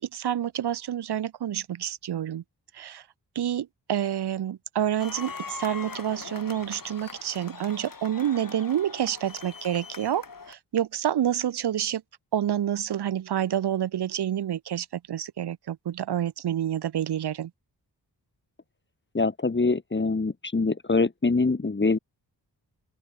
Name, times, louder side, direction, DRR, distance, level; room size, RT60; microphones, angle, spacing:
voice 1, 0.0-2.4 2.7-3.0 3.4-12.0 12.3-17.5, right 10 dB, 70° right, 0.7 m, -28 dB
sound 1, 5.0-10.5, left 4 dB, 55° left, 7.6 m, -41 dB
voice 2, 19.1-22.0, left 3 dB, 25° left, 1.7 m, -24 dB
open air
wide cardioid pair, 85°, 41 cm